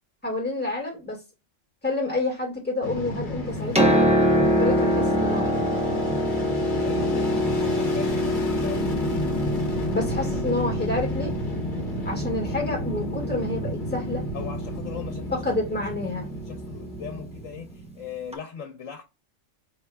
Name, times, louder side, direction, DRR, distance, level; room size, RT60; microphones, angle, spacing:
voice 1, 0.2-1.2 1.8-4.2 4.6-5.7 9.9-11.3 12.0-14.2 15.3-16.3, left 2 dB, 10° left, 1.7 m, -29 dB
Fixed-wing aircraft airplane, 2.8-18.0, equal, 40° left, 1.3 m, -32 dB
Piano, 3.5-17.2 18.3-18.4, equal, 10° right, 0.4 m, -26 dB
voice 2, 6.8-9.0 14.3-15.4 16.2-19.0, left 6 dB, 70° left, 1.3 m, -38 dB
5.1 x 3.3 x 2.3 m
omnidirectional pair, 1.4 m